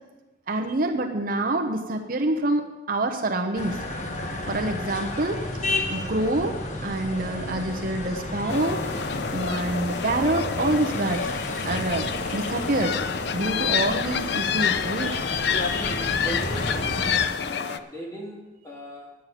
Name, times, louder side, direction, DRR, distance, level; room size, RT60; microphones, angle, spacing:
voice 1, 0.5-3.8 4.5-5.4 5.9-8.8 9.3-11.3 11.6-13.0 13.3-15.1, right 2 dB, 50° right, 3 dB, 0.9 m, -26 dB
sound 1, 3.5-17.2, left 2 dB, 40° left, 1.3 m, -32 dB
sound 2, 8.5-17.8, left 7 dB, 60° left, 0.5 m, -28 dB
voice 2, 15.7-17.1 17.4-19.2, equal, 15° left, -1 dB, 2.1 m, -38 dB
10.0 x 7.6 x 8.3 m, 1.1 s
head